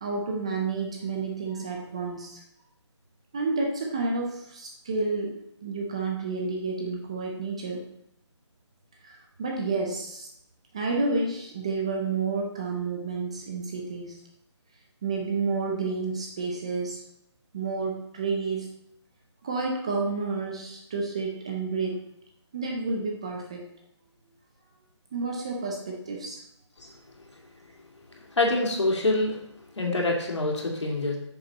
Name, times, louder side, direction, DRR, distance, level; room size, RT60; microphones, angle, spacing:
voice 1, 0.0-2.4 3.3-7.9 9.0-10.3 10.7-14.2 15.0-17.0 17.5-18.7 19.4-22.0 22.5-23.7 25.1-26.4, right 3 dB, 10° right, 0 dB, 0.4 m, -30 dB
voice 2, 28.1-29.4 29.7-31.2, left 2 dB, 70° left, 0 dB, 2.5 m, -26 dB
8.8 x 6.7 x 3.9 m, 0.77 s
figure-of-eight pair, 165°, 15 cm